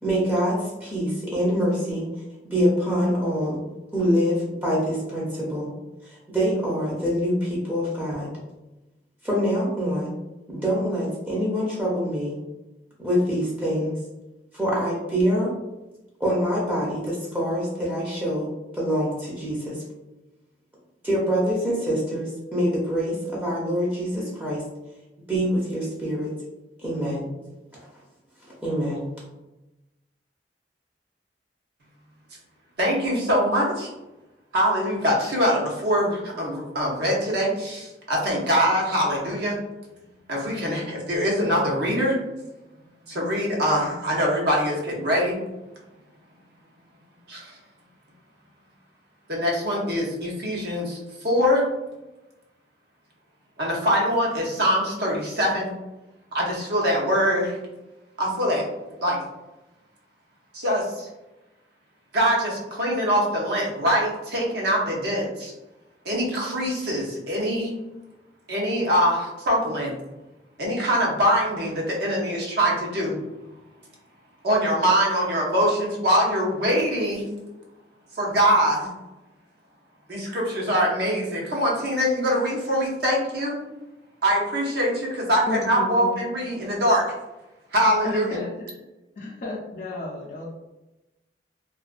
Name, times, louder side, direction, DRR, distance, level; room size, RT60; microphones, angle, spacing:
voice 1, 0.0-2.1 2.5-3.6 3.9-5.7 6.0-8.3 9.2-10.2 10.5-12.4 13.0-13.9 14.5-15.5 16.2-19.8 21.0-24.6 25.3-26.3 26.8-27.3 28.4-29.0, equal, 10° right, -6 dB, 0.5 m, -25 dB
voice 2, 32.8-33.9 34.5-39.6 40.3-42.2 43.1-45.4 47.3-47.6 49.3-51.6 53.6-55.7 56.3-57.6 58.2-58.6 59.0-59.2 60.5-61.1 62.1-65.5 66.0-67.7 68.5-69.9 70.6-73.2 74.4-77.3 78.1-78.9 80.1-83.6 84.2-87.0 87.7-88.4, equal, 65° right, -3 dB, 0.7 m, -23 dB
voice 3, 85.5-86.2 88.0-88.7 89.2-90.5, left 2 dB, 50° left, -6 dB, 0.4 m, -33 dB
2.4 x 2.2 x 2.4 m, 1.0 s
head